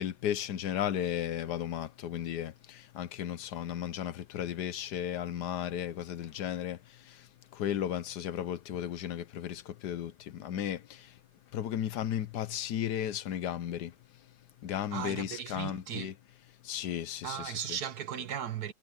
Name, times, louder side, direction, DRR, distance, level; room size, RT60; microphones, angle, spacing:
voice 1, 0.0-11.2 11.5-14.0 14.6-16.1 16.6-17.8, left 10 dB, 80° left, 1.4 m, -35 dB
voice 2, 14.9-16.1 17.2-18.7, right 9 dB, 70° right, 1.6 m, -37 dB
omnidirectional pair, 1.8 m